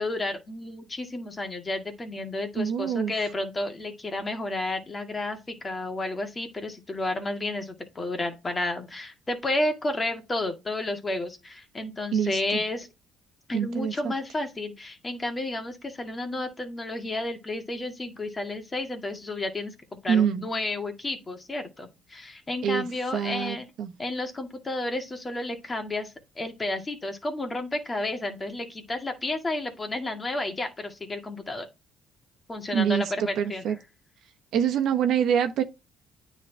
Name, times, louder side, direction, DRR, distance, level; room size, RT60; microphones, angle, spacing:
voice 1, 0.0-12.9 13.5-19.7 20.0-23.7 24.0-31.7 32.5-33.8, left 2 dB, 25° left, 2.0 m, -31 dB
voice 2, 2.6-3.1 12.1-12.6 13.5-14.1 20.1-20.4 22.6-22.9 23.1-23.9 32.7-33.7 34.5-35.6, right 8 dB, 70° right, 1.2 m, -25 dB
9.2 x 4.0 x 3.4 m
cardioid pair, 100°, 0 cm